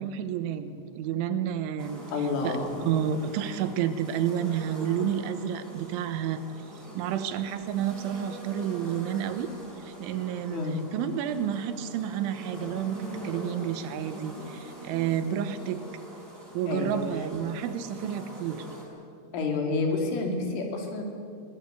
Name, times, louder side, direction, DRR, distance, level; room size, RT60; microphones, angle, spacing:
voice 1, 0.0-2.0 2.4-6.4 7.0-9.5 9.8-10.6 10.9-15.8 16.5-18.7, right 9 dB, 80° right, 10 dB, 3.5 m, -30 dB
sound 1, 1.8-18.8, right 1 dB, 15° right, 5.5 m, -43 dB
voice 2, 2.1-2.8 10.5-10.8 16.7-17.0 19.3-21.0, left 3 dB, 80° left, 2 dB, 5.4 m, -29 dB
22.0 x 17.5 x 8.3 m, 2.2 s
omnidirectional pair, 5.5 m